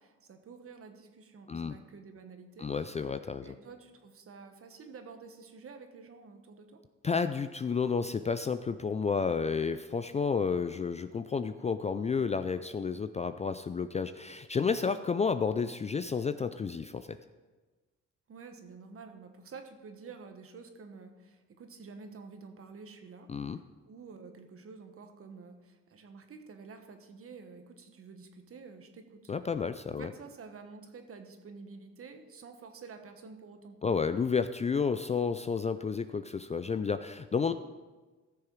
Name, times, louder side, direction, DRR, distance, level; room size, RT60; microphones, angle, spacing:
voice 1, 0.0-2.7 3.4-6.8 18.3-23.3 23.9-29.3 29.9-33.8, right 4 dB, 50° right, 6 dB, 1.4 m, -49 dB
voice 2, 2.6-3.5 7.0-17.2 23.3-23.6 29.3-30.1 33.8-37.5, left 5 dB, 25° left, 11 dB, 0.3 m, -31 dB
14.5 x 6.6 x 4.7 m, 1.3 s
cardioid pair, 90°, 30 cm